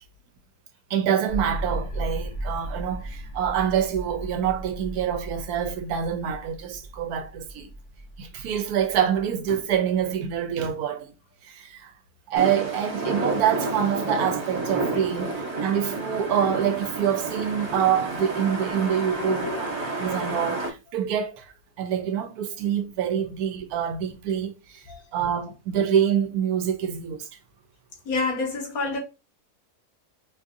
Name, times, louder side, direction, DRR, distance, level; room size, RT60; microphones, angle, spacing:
voice 1, 0.9-7.7 8.2-11.1 11.4-11.9 12.3-19.7 20.0-24.5 25.1-27.3, right 9 dB, 80° right, 1.1 m, -26 dB
sound 1, 1.3-10.7, right 1 dB, 50° left, 1.1 m, -36 dB
sound 2, 12.3-20.7, right 2 dB, 35° right, 0.7 m, -30 dB
voice 2, 19.2-19.6 24.9-25.0 28.0-29.0, left 3 dB, 70° left, 1.5 m, -28 dB
4.4 x 2.6 x 2.5 m
omnidirectional pair, 1.6 m